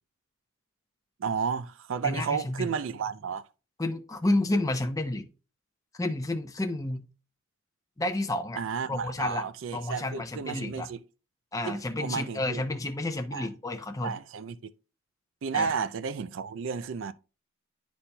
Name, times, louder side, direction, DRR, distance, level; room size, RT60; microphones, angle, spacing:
voice 1, 1.2-3.5 8.6-11.0 11.7-12.6 13.3-13.5 14.0-14.7 15.4-17.1, right 6 dB, 65° right, 0.4 m, -32 dB
voice 2, 2.0-2.7 3.8-5.2 6.0-7.1 8.0-8.6 8.9-9.5 9.7-10.9 11.5-14.1 15.5-15.7, left 2 dB, 15° left, 0.6 m, -30 dB
11.5 x 4.2 x 2.2 m
head